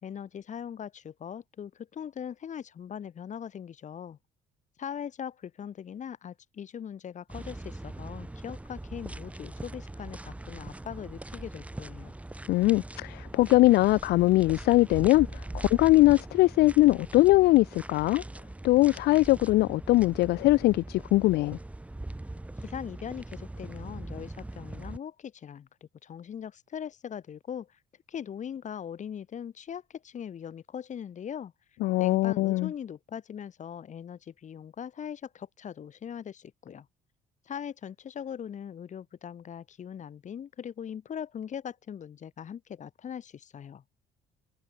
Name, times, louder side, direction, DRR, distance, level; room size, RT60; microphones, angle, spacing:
voice 1, 0.0-4.2 4.8-12.1 22.6-27.8 28.1-31.5 32.0-36.9 37.5-43.8, left 8 dB, 45° left, 3.8 m, -40 dB
sound 1, 7.3-25.0, right 1 dB, 10° right, 1.1 m, -41 dB
voice 2, 12.5-15.3 15.5-18.2 18.6-21.6 31.8-32.7, left 18 dB, 75° left, 0.4 m, -21 dB
cardioid pair, 110°, 17 cm